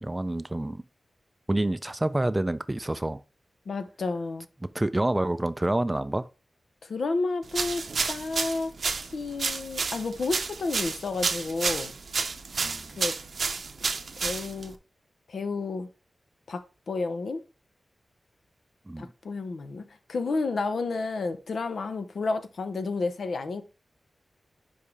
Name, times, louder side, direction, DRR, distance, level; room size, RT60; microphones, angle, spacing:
voice 1, 0.0-0.8 1.5-3.2 4.7-6.3 12.6-12.9 18.9-19.1, right 1 dB, 15° right, 0.4 m, -28 dB
voice 2, 3.7-4.5 6.8-8.7 9.1-11.9 13.0-13.1 14.2-14.7 15.3-15.9 16.5-17.4 19.0-19.8 20.1-23.6, left 3 dB, 80° left, 0.7 m, -31 dB
sound 1, 7.5-14.7, right 4 dB, 70° right, 0.6 m, -31 dB
5.4 x 5.0 x 3.5 m
wide cardioid pair, 115°, 0 cm